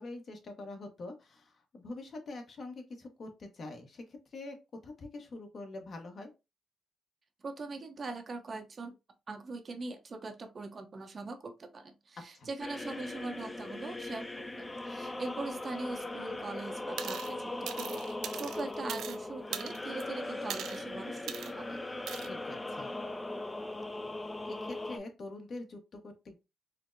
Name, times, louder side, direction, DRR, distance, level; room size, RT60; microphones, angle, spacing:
voice 1, 0.0-4.6 4.8-6.3 12.3-12.5 22.3-22.9 24.4-26.4, left 2 dB, 50° left, 0.9 m, -45 dB
voice 2, 7.4-8.9 9.3-21.8, right 3 dB, 40° right, 0.6 m, -42 dB
sound 1, 12.6-25.0, left 2 dB, 15° left, 0.3 m, -39 dB
sound 2, 17.0-17.3 17.7-19.2 19.5-20.0 20.5-20.8 21.3-21.5 22.1-22.3, right 9 dB, 80° right, 0.3 m, -40 dB
4.3 x 2.0 x 2.5 m
cardioid pair, 100°, 0 cm